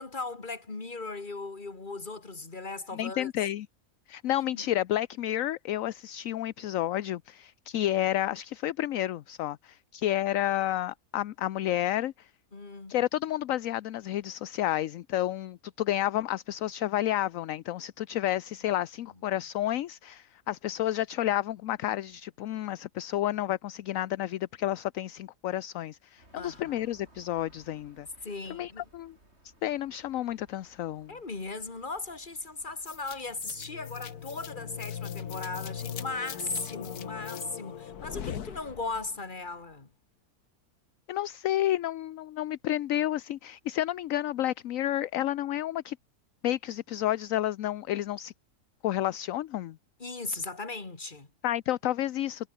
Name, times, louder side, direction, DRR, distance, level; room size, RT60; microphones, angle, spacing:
voice 1, 0.0-3.3 4.5-4.7 12.5-12.9 26.4-26.9 28.2-28.8 31.1-39.9 50.0-51.3, left 3 dB, 30° left, 2.5 m, -38 dB
voice 2, 2.9-3.7 4.1-12.3 12.9-28.1 28.5-29.1 29.6-31.1 41.1-46.0 46.4-48.3 48.8-49.8 51.4-52.5, left 13 dB, 65° left, 1.0 m, -30 dB
sound 1, 26.2-37.3, right 1 dB, 45° right, 7.7 m, -61 dB
sound 2, 32.9-39.2, left 8 dB, 90° left, 1.8 m, -39 dB
omnidirectional pair, 1.6 m